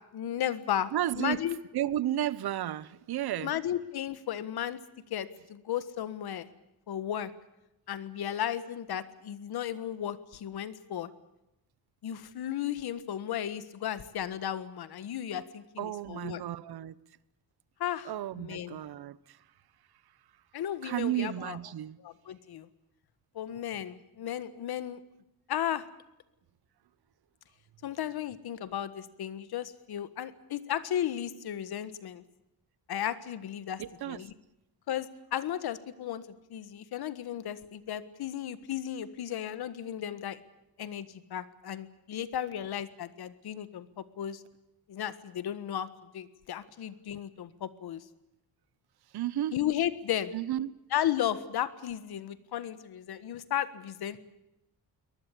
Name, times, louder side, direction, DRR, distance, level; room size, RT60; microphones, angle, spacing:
voice 1, 0.1-1.6 3.4-4.8 5.1-6.5 6.9-7.3 7.9-11.1 12.0-16.4 17.8-18.8 20.5-21.6 22.0-22.7 23.3-25.0 25.5-25.8 27.8-32.2 32.9-34.3 34.9-40.4 40.8-44.4 44.9-48.0 49.5-50.3 50.9-54.2, left 10 dB, 75° left, 1.6 m, -34 dB
voice 2, 0.9-1.4 1.7-3.5 15.8-17.0 18.0-19.4 20.8-22.0 33.8-34.2 49.1-49.6 50.3-50.7, right 12 dB, 75° right, 1.0 m, -33 dB
23.5 x 20.0 x 8.5 m
wide cardioid pair, 160°, 38 cm